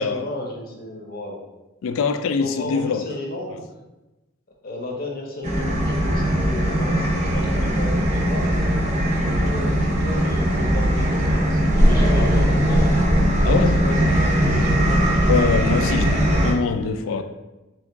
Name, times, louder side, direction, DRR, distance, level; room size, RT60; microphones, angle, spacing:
voice 1, 0.1-1.4 2.4-3.7 4.6-8.6 9.1-13.0 13.6-15.0 16.8-17.2, left 1 dB, 45° left, -1 dB, 0.7 m, -33 dB
voice 2, 1.8-3.0 12.1-12.7 13.4-13.8 15.3-17.2, left 5 dB, 65° left, 9 dB, 0.3 m, -24 dB
sound 1, 5.4-16.5, equal, 35° right, 0.6 m, -19 dB
3.4 x 2.9 x 3.4 m, 1.0 s
head